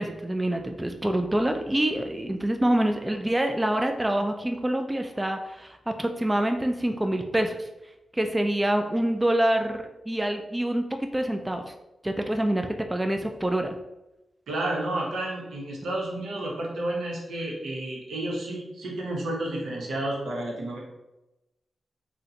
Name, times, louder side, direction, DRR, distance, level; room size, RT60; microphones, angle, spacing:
voice 1, 0.0-7.7 8.1-11.7 12.0-13.8, right 1 dB, 20° right, 5 dB, 0.3 m, -26 dB
voice 2, 14.5-20.8, right 1 dB, 80° right, -2 dB, 0.8 m, -31 dB
3.7 x 2.1 x 2.7 m, 0.96 s
supercardioid pair, 45°, 0 cm